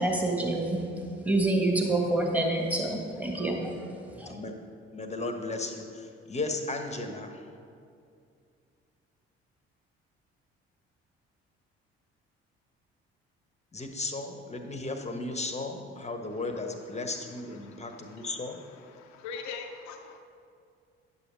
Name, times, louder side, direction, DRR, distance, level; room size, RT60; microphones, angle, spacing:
voice 1, 0.0-4.3, right 2 dB, 5° right, 0 dB, 1.6 m, -28 dB
voice 2, 4.2-4.6 4.9-7.4 13.7-18.6, left 2 dB, 20° left, 6 dB, 1.1 m, -35 dB
voice 3, 17.9-18.3 19.0-20.2, left 5 dB, 60° left, 4 dB, 0.7 m, -41 dB
9.7 x 6.9 x 3.8 m, 2.4 s
figure-of-eight pair, 50°, 32 cm